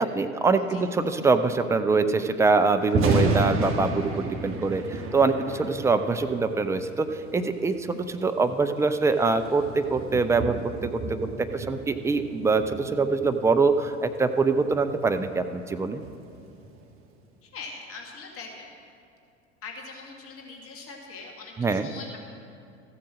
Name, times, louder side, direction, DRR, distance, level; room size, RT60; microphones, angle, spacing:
voice 1, 0.0-16.0 21.6-21.9, right 4 dB, 10° right, 8 dB, 0.3 m, -24 dB
Thunder, 2.8-16.9, right 2 dB, 35° right, 1.5 m, -33 dB
voice 2, 17.4-18.7 19.6-22.2, left 4 dB, 40° left, 1 dB, 1.9 m, -42 dB
14.0 x 7.8 x 6.3 m, 2.6 s
figure-of-eight pair, 75°, 36 cm